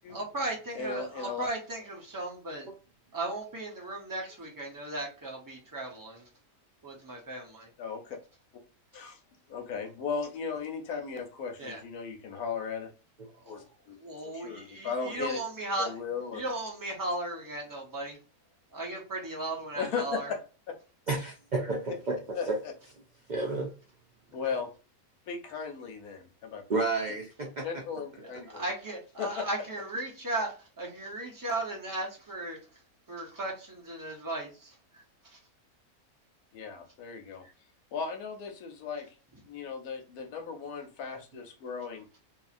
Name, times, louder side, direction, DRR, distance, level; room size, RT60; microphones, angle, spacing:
voice 1, 0.1-2.7 3.1-6.3 6.8-7.7 11.6-11.8 13.4-13.6 14.0-15.9 16.3-18.2 18.7-20.3 28.2-32.6 33.1-35.4, right 2 dB, 15° right, -2 dB, 0.7 m, -36 dB
voice 2, 0.7-1.4 7.8-8.2 8.9-9.2 9.5-12.9 13.5-14.0 14.2-15.4 15.8-16.4 19.7-20.4 22.3-22.7 24.3-24.7 25.3-26.8 27.6-28.6 29.2-29.5 36.5-37.4 37.9-39.1 39.4-42.1, left 5 dB, 85° left, 4 dB, 1.3 m, -36 dB
voice 3, 21.1-22.6 23.3-23.7 26.7-27.7 27.9-28.0, right 3 dB, 80° right, 0 dB, 0.4 m, -31 dB
2.8 x 2.8 x 2.4 m, 0.35 s
omnidirectional pair, 1.6 m